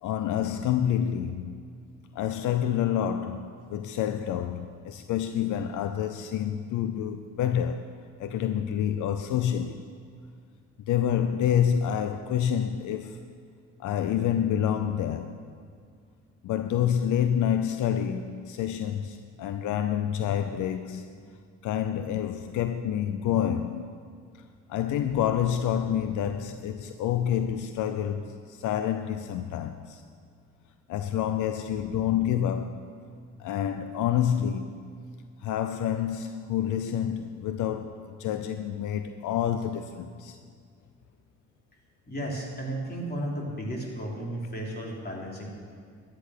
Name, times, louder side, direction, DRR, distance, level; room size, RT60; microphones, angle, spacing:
voice 1, 0.0-1.6 2.1-7.9 8.2-9.8 10.9-13.2 13.8-15.4 16.4-21.1 21.6-23.8 24.7-30.0 30.9-32.9 33.4-34.9 35.4-40.4, left 9 dB, 80° left, 0.6 m, -28 dB
voice 2, 42.1-45.5, right 1 dB, 30° left, 3.5 m, -34 dB
13.0 x 10.5 x 6.5 m
cardioid pair, 90°, 30 cm